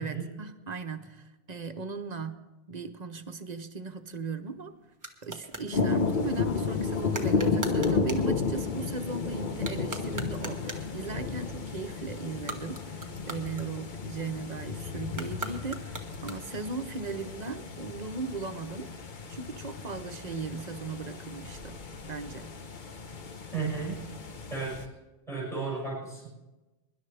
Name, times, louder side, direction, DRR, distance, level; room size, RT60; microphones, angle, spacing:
voice 1, 0.0-4.7 5.2-18.9 19.3-22.5, right 4 dB, 45° right, 0.8 m, -37 dB
sound 1, 4.0-5.7 7.1-8.3 9.5-11.0 12.3-14.1 15.1-16.7, right 2 dB, 20° right, 1.3 m, -41 dB
sound 2, 5.7-24.9, left 4 dB, 50° left, 1.0 m, -33 dB
voice 2, 23.5-24.0 24.5-24.9 25.3-26.2, right 4 dB, 5° left, 6.1 m, -33 dB
24.0 x 11.0 x 3.3 m
omnidirectional pair, 1.1 m